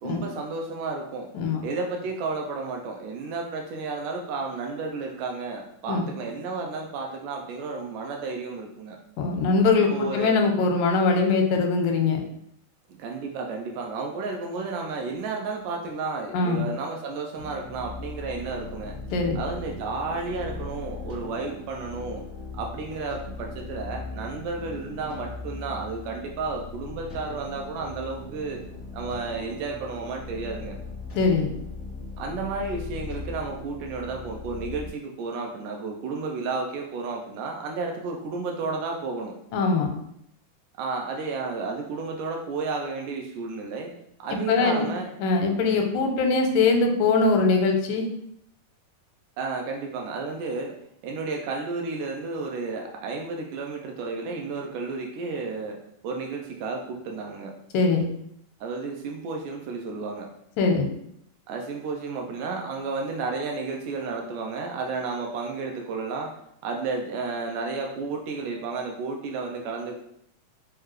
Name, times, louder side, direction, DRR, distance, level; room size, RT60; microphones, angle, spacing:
voice 1, 0.0-1.3 1.6-9.0 9.9-10.4 12.9-19.0 19.4-22.2 22.5-28.6 28.9-30.8 32.2-39.3 40.8-43.9 44.2-45.1 45.7-46.0 49.4-50.7 51.0-55.8 56.0-57.6 58.6-60.3 61.5-66.4 66.6-70.0, right 4 dB, 80° right, 1 dB, 2.0 m, -32 dB
voice 2, 1.3-1.7 5.9-6.1 9.2-12.2 16.3-16.7 19.1-19.4 31.2-31.5 39.5-39.9 44.5-44.9 45.2-48.1 57.7-58.1 60.6-60.9, left 4 dB, 85° left, 3 dB, 2.2 m, -22 dB
sound 1, 17.4-34.9, left 3 dB, 60° left, 0.8 m, -39 dB
6.5 x 2.3 x 3.1 m, 0.73 s
omnidirectional pair, 3.9 m